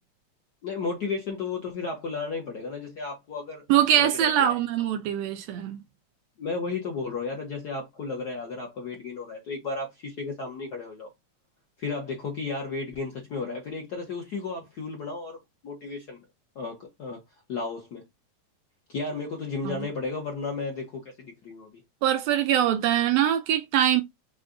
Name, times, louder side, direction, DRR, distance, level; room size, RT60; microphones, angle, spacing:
voice 1, 0.6-3.6 3.9-4.5 6.4-11.1 11.8-16.2 16.5-17.2 17.5-18.0 18.9-21.8, left 4 dB, 75° left, 0.9 m, -33 dB
voice 2, 3.7-5.8 19.6-19.9 22.0-24.0, right 11 dB, 80° right, 1.5 m, -23 dB
5.0 x 2.3 x 3.7 m
omnidirectional pair, 3.3 m